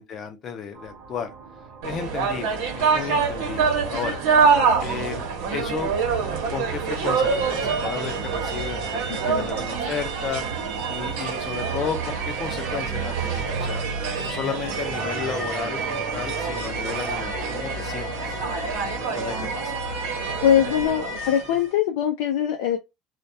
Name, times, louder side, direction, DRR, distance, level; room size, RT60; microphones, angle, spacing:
voice 1, 0.0-1.3 1.8-4.2 4.8-5.9 6.5-8.8 9.1-10.4 10.9-13.9 14.2-18.4 19.1-19.8, left 7 dB, 30° left, 0.4 m, -33 dB
sound 1, 0.7-14.9, right 5 dB, 55° right, 0.7 m, -45 dB
sound 2, 1.8-21.6, right 5 dB, 85° right, 0.8 m, -26 dB
voice 2, 20.4-22.8, left 10 dB, 90° left, 0.4 m, -22 dB
2.2 x 2.2 x 2.6 m
cardioid pair, 180°, 0 cm